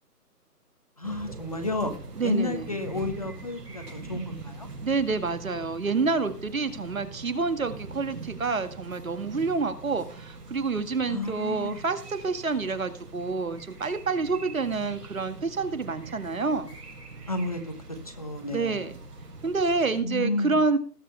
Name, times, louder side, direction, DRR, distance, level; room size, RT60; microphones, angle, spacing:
voice 1, 1.0-1.9 2.2-4.7 11.1-11.8 17.3-18.9 19.9-20.7, left 2 dB, 25° left, 6 dB, 1.2 m, -32 dB
sound 1, 1.0-20.0, right 3 dB, 75° right, 6.0 m, -43 dB
voice 2, 2.2-2.8 4.8-16.7 18.5-19.0 19.4-20.8, right 4 dB, 60° right, 10 dB, 2.0 m, -28 dB
19.5 x 7.5 x 3.3 m, 0.40 s
hypercardioid pair, 175°, 47 cm